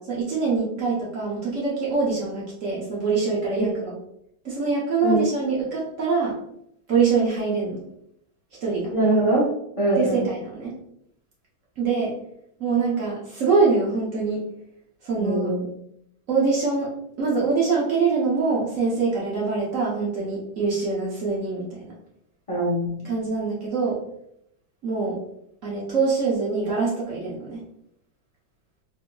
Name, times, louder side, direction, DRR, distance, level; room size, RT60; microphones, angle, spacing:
voice 1, 0.1-3.9 4.4-6.4 6.9-7.9 8.6-8.9 10.0-10.7 11.8-12.1 12.6-14.4 15.0-15.6 16.3-16.9 17.2-21.9 23.0-24.0 24.8-25.2 25.6-27.6, right 4 dB, 60° right, -4 dB, 0.9 m, -24 dB
voice 2, 8.9-9.4 9.8-10.3 15.2-15.6 22.5-23.0, right 1 dB, 30° left, -6 dB, 0.6 m, -22 dB
3.6 x 2.7 x 2.2 m, 0.75 s
omnidirectional pair, 1.9 m